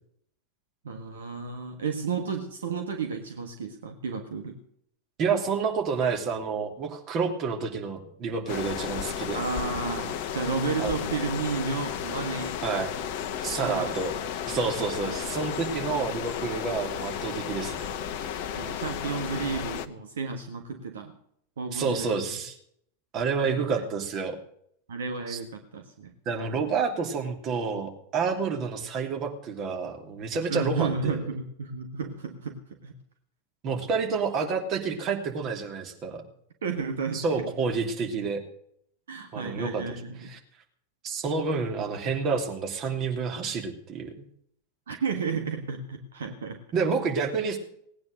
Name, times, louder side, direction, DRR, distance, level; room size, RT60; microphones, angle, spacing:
voice 1, 0.8-4.6 9.3-12.6 13.6-14.0 15.1-15.8 18.5-21.1 21.6-22.2 23.4-23.8 24.9-26.1 30.5-32.6 32.8-32.9 36.6-37.5 39.1-40.3 44.9-46.6, right 5 dB, 65° right, 5 dB, 1.5 m, -32 dB
voice 2, 5.2-9.4 10.8-11.0 12.6-12.9 13.4-14.1 14.5-17.8 21.7-22.5 23.1-24.3 25.3-25.4 26.3-31.3 33.6-36.2 37.1-38.4 39.3-39.8 40.3-40.4 41.0-44.1 46.7-47.6, right 5 dB, 35° right, 3 dB, 2.9 m, -29 dB
sound 1, 8.5-19.9, left 8 dB, 45° left, 1.0 m, -33 dB
18.5 x 9.5 x 6.6 m, 0.68 s
figure-of-eight pair, 90°, 0 cm